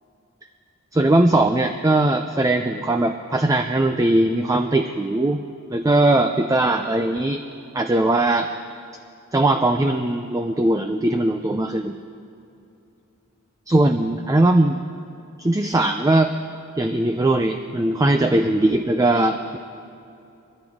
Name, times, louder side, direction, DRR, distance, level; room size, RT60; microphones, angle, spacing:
voice 1, 0.9-5.4 5.7-7.4 7.7-8.5 9.3-12.0 13.7-14.8 15.4-16.3 16.8-19.6, right 2 dB, 15° right, 6 dB, 0.4 m, -20 dB
22.5 x 16.0 x 3.6 m, 2.7 s
head